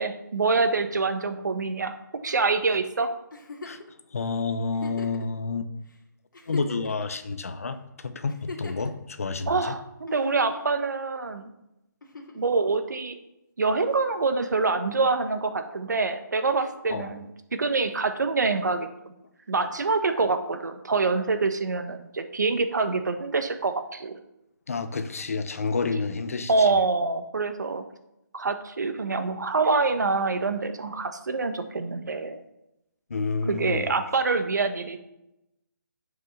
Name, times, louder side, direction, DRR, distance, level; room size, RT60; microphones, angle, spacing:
voice 1, 0.0-1.9 2.2-3.1 9.5-11.5 12.3-13.2 13.6-17.2 17.6-19.1 19.5-24.2 26.5-27.8 28.3-32.4 33.5-35.0, right 3 dB, 60° right, 8 dB, 1.3 m, -25 dB
Giggle, 3.3-3.9 4.7-5.2 5.9-6.0 6.3-7.1 8.3-8.9 10.1-10.7 12.0-12.5 14.0-14.1, left 2 dB, 85° left, 2.4 m, -40 dB
voice 2, 4.1-5.7 6.5-9.7 16.9-17.2 24.7-26.7 33.1-33.9, left 4 dB, 45° left, 10 dB, 0.9 m, -29 dB
7.3 x 6.5 x 6.8 m, 0.88 s
hypercardioid pair, 175°, 11 cm